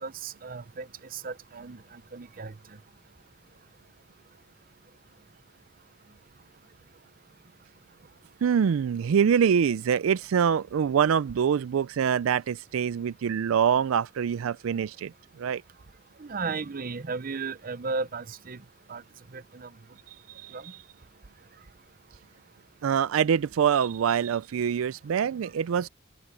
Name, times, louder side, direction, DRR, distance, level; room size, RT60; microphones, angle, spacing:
voice 1, 0.0-2.5 16.2-18.6 18.9-19.0 19.3-19.7 20.5-20.6, right 4 dB, 45° right, 0.7 m, -35 dB
voice 2, 8.4-15.6 20.1-20.8 22.8-25.9, right 7 dB, 85° right, 0.4 m, -25 dB
open air
head